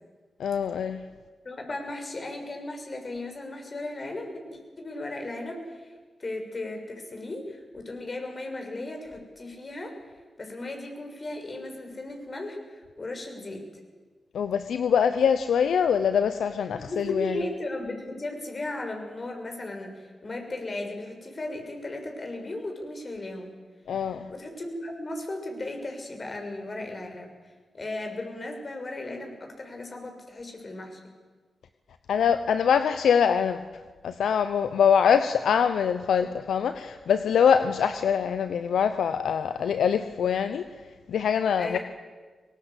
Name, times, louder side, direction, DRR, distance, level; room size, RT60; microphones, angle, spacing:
voice 1, 0.4-1.0 14.3-17.4 23.9-24.3 32.1-33.6 34.0-40.7 41.1-41.8, left 7 dB, 80° left, 10 dB, 0.8 m, -24 dB
voice 2, 1.4-5.9 6.2-9.9 10.4-13.6 16.8-23.5 24.3-27.3 27.7-31.0 41.6-41.8, left 2 dB, 45° left, 3 dB, 6.6 m, -36 dB
23.0 x 20.0 x 8.4 m, 1.4 s
supercardioid pair, 45°, 0 cm